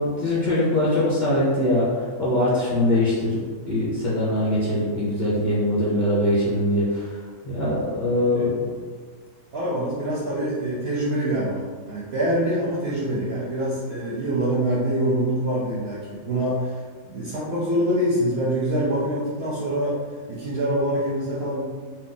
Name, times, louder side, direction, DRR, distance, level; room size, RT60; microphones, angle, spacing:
voice 1, 0.0-3.4 3.7-7.2 7.4-8.7, left 1 dB, 40° left, -9 dB, 0.8 m, -22 dB
voice 2, 9.5-16.7 17.0-20.0 20.3-21.6, right 1 dB, 60° right, -6 dB, 0.7 m, -25 dB
2.8 x 2.1 x 3.7 m, 1.5 s
omnidirectional pair, 1.5 m